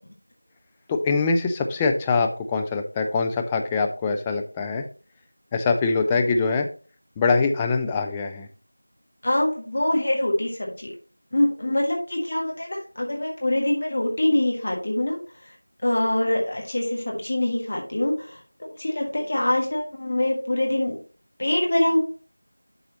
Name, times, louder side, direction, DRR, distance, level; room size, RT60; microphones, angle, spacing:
voice 1, 0.9-4.8 5.5-6.7 7.2-8.5, left 4 dB, 5° left, 4 dB, 0.3 m, -23 dB
voice 2, 9.2-10.9 11.3-15.2 15.8-18.4 18.8-21.0 21.4-22.0, left 1 dB, 30° left, -1 dB, 1.7 m, -24 dB
11.5 x 4.1 x 2.9 m, 0.39 s
figure-of-eight pair, 175°, 0 cm